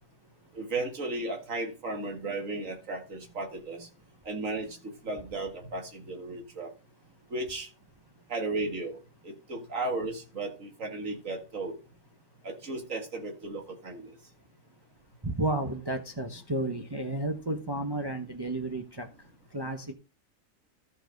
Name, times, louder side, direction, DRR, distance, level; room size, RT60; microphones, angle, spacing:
voice 1, 0.5-3.9 4.3-6.7 7.3-7.7 8.3-9.0 9.2-11.7 12.4-14.1, right 2 dB, 70° right, 3 dB, 2.4 m, -35 dB
voice 2, 15.2-19.1 19.5-19.9, right 2 dB, 20° right, 3 dB, 0.9 m, -32 dB
13.5 x 4.8 x 5.2 m, 0.32 s
omnidirectional pair, 1.4 m